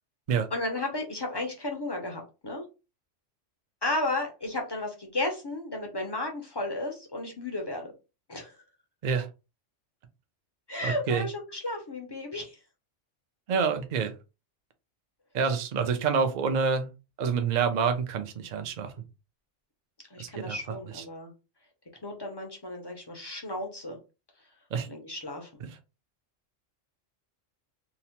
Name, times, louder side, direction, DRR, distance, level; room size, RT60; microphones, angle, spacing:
voice 1, 0.5-2.6 3.8-7.9 8.3-8.6 10.7-12.6 20.1-21.3 22.0-24.0 24.9-25.5, left 2 dB, 35° left, 2 dB, 0.4 m, -33 dB
voice 2, 10.8-11.3 13.5-14.1 15.3-16.9 17.2-18.9 20.2-20.6 20.9-21.0 24.7-24.9, right 6 dB, 60° right, 7 dB, 0.4 m, -27 dB
2.9 x 2.1 x 2.8 m, 0.29 s
omnidirectional pair, 1.3 m